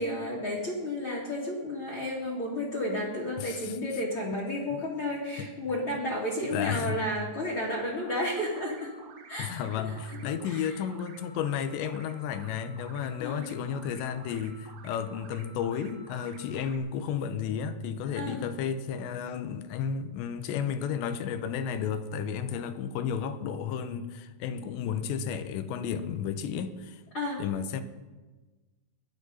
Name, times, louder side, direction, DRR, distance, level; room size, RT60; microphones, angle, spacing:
voice 1, 0.0-9.0 9.3-9.9 10.2-10.8 13.2-13.5 18.1-18.4 27.1-27.4, left 1 dB, 35° left, 2.4 m, -32 dB
voice 2, 3.4-3.8 4.7-4.8 5.4-5.5 6.5-7.0 9.4-27.0 27.4-27.8, left 7 dB, 80° left, 2.9 m, -32 dB
sound 1, 8.0-16.8, right 4 dB, 85° right, 1.4 m, -52 dB
21.0 x 12.0 x 4.1 m
omnidirectional pair, 5.2 m